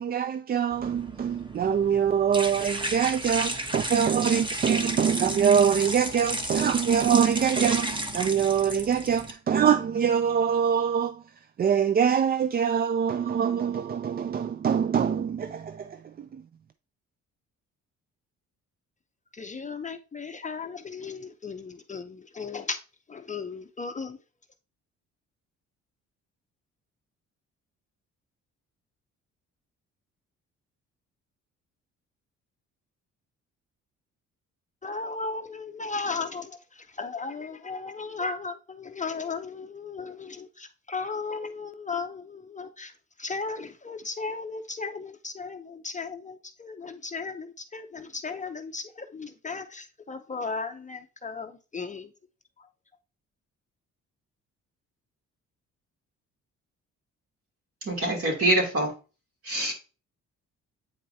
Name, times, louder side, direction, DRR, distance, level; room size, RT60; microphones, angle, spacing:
voice 1, 0.0-11.2 11.6-16.0, right 7 dB, 30° right, 0.4 m, -24 dB
sound 1, 0.7-9.3, right 1 dB, 15° right, 1.1 m, -33 dB
voice 2, 19.4-22.8 23.1-24.2 34.8-36.6 37.0-42.9 43.2-52.1, left 4 dB, 25° left, 0.6 m, -35 dB
voice 3, 57.8-58.9 59.4-59.7, right 1 dB, 50° right, 2.9 m, -25 dB
8.7 x 4.5 x 2.8 m
cardioid pair, 90°, 30 cm